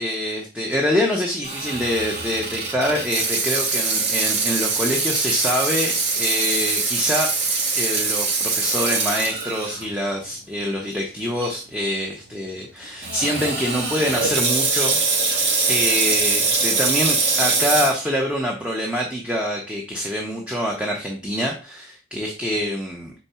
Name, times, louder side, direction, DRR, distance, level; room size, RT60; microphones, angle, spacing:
voice 1, 0.0-7.3 7.7-15.0 15.3-23.1, equal, 5° right, -1 dB, 0.9 m, -25 dB
Water tap faucet / Sink (filling or washing), 1.4-9.8 10.3-10.4 11.2-11.4 13.0-17.9, right 4 dB, 65° right, 2.4 m, -23 dB
4.5 x 4.4 x 5.7 m, 0.35 s
head